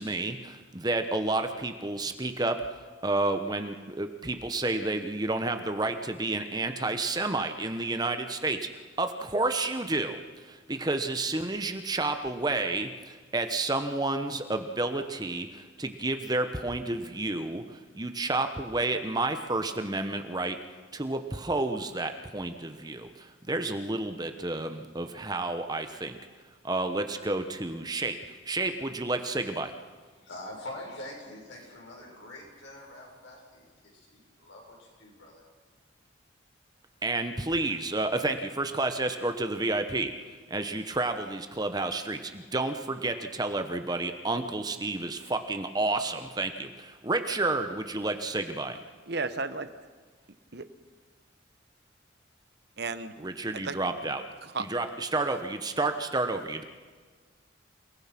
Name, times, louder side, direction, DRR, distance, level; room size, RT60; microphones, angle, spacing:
voice 1, 0.0-2.6 3.0-8.7 9.0-20.6 20.9-26.2 26.6-28.2 28.5-29.7 37.0-40.1 40.5-48.8 53.2-54.2 54.6-56.6, right 2 dB, 20° right, 7 dB, 1.0 m, -30 dB
voice 2, 30.2-35.4, left 1 dB, 70° left, -1 dB, 7.0 m, -45 dB
voice 3, 49.1-49.7 50.5-50.6 52.8-53.1 53.5-53.8 54.4-54.7, right 4 dB, 55° right, 11 dB, 1.1 m, -33 dB
29.0 x 18.5 x 6.0 m, 1.5 s
head